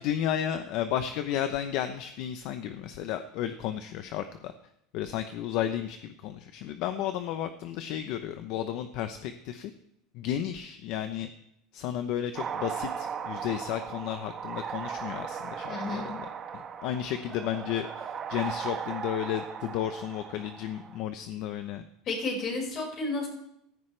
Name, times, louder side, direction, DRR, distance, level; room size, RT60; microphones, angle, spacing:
voice 1, 0.0-4.5 4.9-9.7 10.1-11.3 11.7-16.3 16.5-21.8, left 10 dB, 55° left, 9 dB, 0.8 m, -33 dB
sound 1, 12.4-21.0, right 7 dB, 25° right, 1.1 m, -37 dB
voice 2, 15.7-16.1 22.1-23.3, left 3 dB, 35° left, 0 dB, 5.3 m, -31 dB
15.5 x 14.0 x 3.3 m, 0.77 s
supercardioid pair, 150°, 0 cm